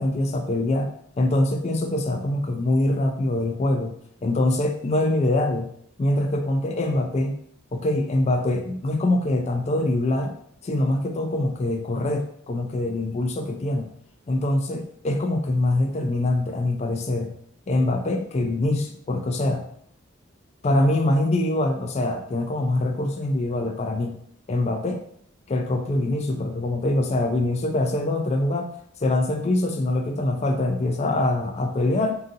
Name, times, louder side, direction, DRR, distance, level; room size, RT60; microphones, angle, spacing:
voice 1, 0.0-3.9 4.2-5.7 6.0-7.4 7.7-10.3 10.6-13.9 14.3-17.3 17.7-19.6 20.6-24.2 24.5-25.0 25.5-28.7 29.0-32.2, left 1 dB, 35° left, 4 dB, 0.4 m, -24 dB
3.9 x 2.6 x 3.9 m, 0.67 s
head